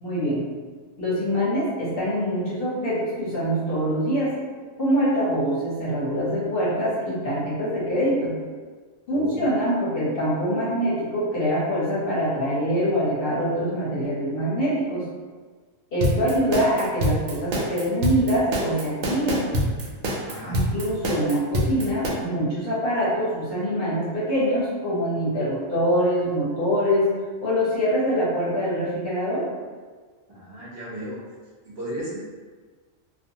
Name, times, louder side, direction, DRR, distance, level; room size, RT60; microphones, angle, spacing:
voice 1, 0.0-0.4 1.0-4.3 4.8-8.3 9.1-15.1 15.9-19.5 20.5-27.1 27.4-29.4, equal, 55° left, -8 dB, 0.8 m, -24 dB
voice 2, 9.1-9.4 20.3-20.6 30.3-31.2 31.6-32.2, right 1 dB, 55° right, -7 dB, 0.8 m, -35 dB
sound 1, 16.0-22.1, equal, 90° right, 1.0 m, -25 dB
2.5 x 2.2 x 2.7 m, 1.5 s
omnidirectional pair, 1.4 m